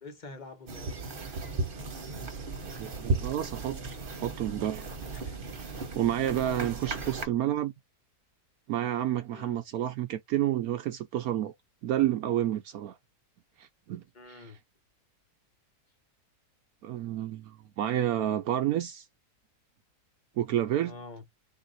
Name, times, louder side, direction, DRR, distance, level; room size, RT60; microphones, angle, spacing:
voice 1, 0.0-1.0 5.1-5.4 6.8-7.2 9.3-9.6 14.1-14.6 20.8-21.2, left 3 dB, 35° left, 1.0 m, -46 dB
sound 1, 0.7-7.3, right 3 dB, 40° right, 1.1 m, -35 dB
voice 2, 2.8-3.8 4.1-4.9 6.0-7.7 8.7-11.5 11.8-12.9 13.6-14.5 16.8-19.0 20.4-20.9, right 12 dB, 75° right, 1.0 m, -30 dB
3.7 x 2.7 x 4.0 m
omnidirectional pair, 1.6 m